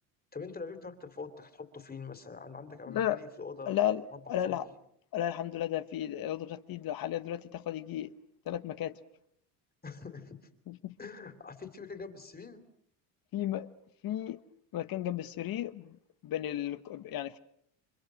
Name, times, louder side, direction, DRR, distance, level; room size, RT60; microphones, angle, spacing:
voice 1, 0.3-3.8 4.1-4.7 9.8-10.5 11.0-12.7, left 4 dB, 20° left, 3.2 m, -44 dB
voice 2, 2.9-3.2 3.7-4.6 5.1-8.1 8.5-8.9 10.7-10.9 13.3-13.7 14.0-14.4 14.7-16.0 16.2-17.4, left 12 dB, 50° left, 1.2 m, -33 dB
29.5 x 25.0 x 6.4 m
supercardioid pair, 95°, 44 cm